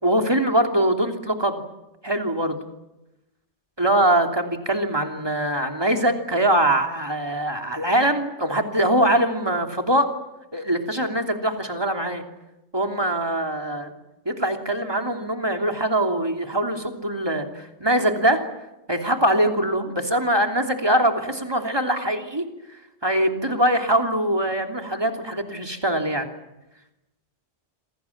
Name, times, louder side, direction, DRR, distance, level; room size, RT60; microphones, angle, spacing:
voice 1, 0.0-1.6 2.0-2.6 3.8-10.1 10.5-12.2 12.7-13.9 14.2-18.4 18.9-22.4 23.0-26.3, right 1 dB, 20° right, 4 dB, 3.0 m, -22 dB
28.0 x 26.5 x 7.3 m, 0.94 s
omnidirectional pair, 1.2 m